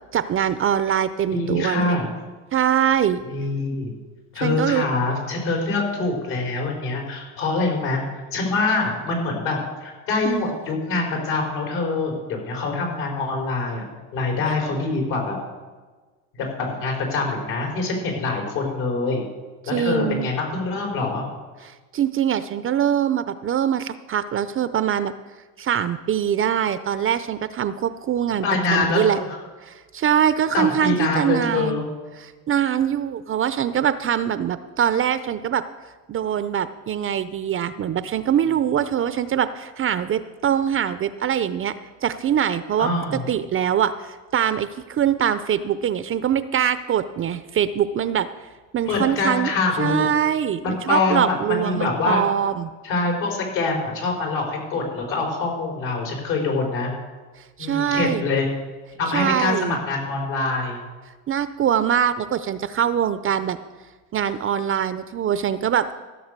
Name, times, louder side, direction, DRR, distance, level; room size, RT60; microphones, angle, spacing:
voice 1, 0.1-1.9 2.5-3.2 4.4-4.9 10.2-10.5 19.6-20.3 21.6-25.1 25.6-28.5 28.7-29.2 29.6-31.8 32.2-35.6 36.1-41.7 42.0-43.9 44.3-48.3 48.7-49.5 49.8-52.7 57.6-58.2 59.1-59.8 61.3-63.6 64.1-66.0, right 9 dB, 35° right, 13 dB, 0.6 m, -23 dB
voice 2, 1.3-2.1 3.3-3.9 4.3-8.0 8.3-13.8 14.1-15.4 16.3-19.3 19.7-21.3 28.4-29.4 30.5-31.8 42.8-43.2 48.8-50.1 50.6-52.2 52.8-56.9 57.6-58.5 59.0-60.8, left 3 dB, 70° left, 0 dB, 5.0 m, -24 dB
15.0 x 6.7 x 6.7 m, 1.3 s
supercardioid pair, 105°, 39 cm